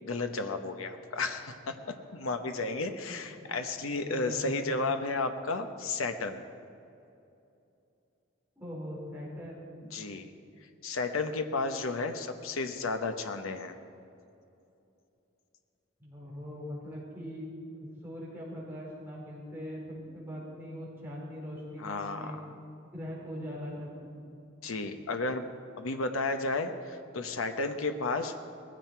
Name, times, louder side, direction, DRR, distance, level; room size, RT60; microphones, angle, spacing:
voice 1, 0.0-6.4 9.9-10.3 10.8-13.7 21.8-22.5 24.6-25.5 25.8-28.3, left 3 dB, 90° left, 7 dB, 0.9 m, -33 dB
voice 2, 3.9-4.6 8.6-9.7 16.0-22.4 22.8-24.2, equal, 10° right, -5 dB, 4.1 m, -41 dB
19.5 x 15.5 x 4.6 m, 2.7 s
head